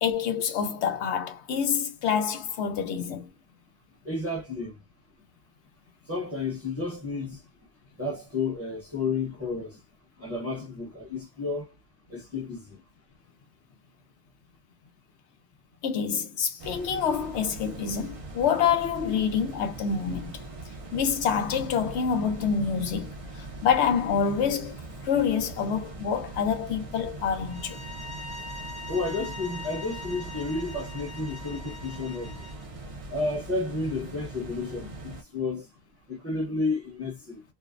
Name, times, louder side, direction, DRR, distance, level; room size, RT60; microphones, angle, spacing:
voice 1, 0.0-3.3 15.8-20.4 20.9-27.8, left 7 dB, 90° left, 0.9 m, -27 dB
voice 2, 4.0-4.8 6.1-7.4 8.0-9.8 10.2-11.7 12.1-12.8 28.9-32.4 33.1-35.6 36.1-37.4, left 3 dB, 15° right, 0.7 m, -31 dB
sound 1, 16.6-35.2, right 2 dB, 55° right, 0.4 m, -41 dB
sound 2, 27.5-32.6, left 2 dB, 40° left, 0.8 m, -42 dB
2.6 x 2.0 x 2.4 m
omnidirectional pair, 1.1 m